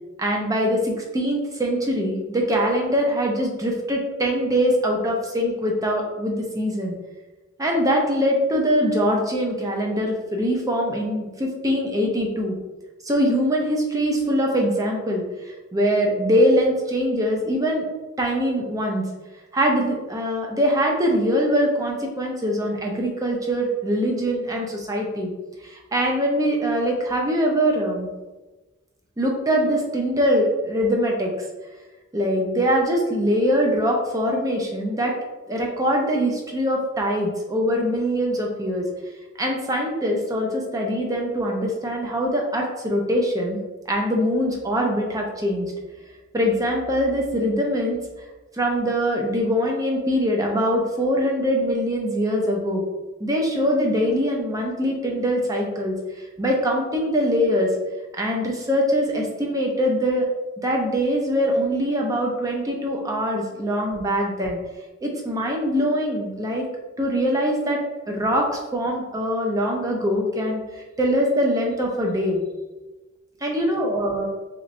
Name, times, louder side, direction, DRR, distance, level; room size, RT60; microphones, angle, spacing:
voice 1, 0.2-7.0 7.6-12.6 13.0-17.8 18.2-19.0 19.5-25.3 25.6-28.1 29.2-31.3 32.1-35.1 35.5-38.9 39.4-43.6 43.9-45.7 46.3-48.0 48.5-52.8 53.2-57.7 58.1-60.3 60.6-64.6 65.0-66.6 67.0-67.8 68.1-70.6 71.0-72.4 73.4-74.3, equal, 15° right, 0 dB, 0.5 m, -23 dB
3.1 x 2.9 x 2.5 m, 1.2 s
head